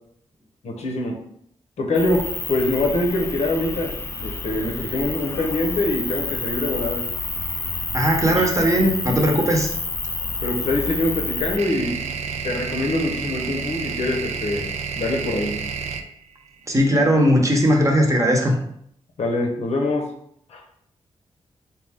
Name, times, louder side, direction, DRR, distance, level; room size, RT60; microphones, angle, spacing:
voice 1, 0.6-1.2 1.8-3.9 4.2-7.0 10.4-12.0 12.4-14.6 15.0-15.6 19.2-20.1 20.5-20.6, left 2 dB, 75° left, 2 dB, 0.8 m, -24 dB
sound 1, 1.9-11.6, left 3 dB, 25° left, 0.3 m, -29 dB
voice 2, 7.9-9.7 16.7-18.5, equal, 30° right, 1 dB, 0.8 m, -18 dB
sound 2, 8.3-8.5 10.6-17.6, right 5 dB, 75° right, 0.4 m, -30 dB
3.7 x 2.3 x 3.4 m, 0.69 s
cardioid pair, 70°, 11 cm